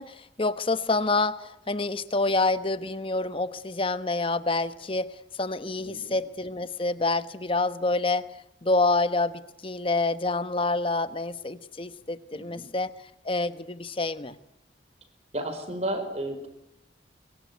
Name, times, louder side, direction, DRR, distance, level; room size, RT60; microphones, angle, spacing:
voice 1, 0.0-8.3 8.6-12.9 13.2-14.4, left 3 dB, 30° left, 12 dB, 1.1 m, -27 dB
voice 2, 5.8-6.2 12.3-12.6 15.3-16.5, right 1 dB, 40° right, 8 dB, 4.8 m, -33 dB
24.0 x 23.5 x 9.5 m, 0.82 s
head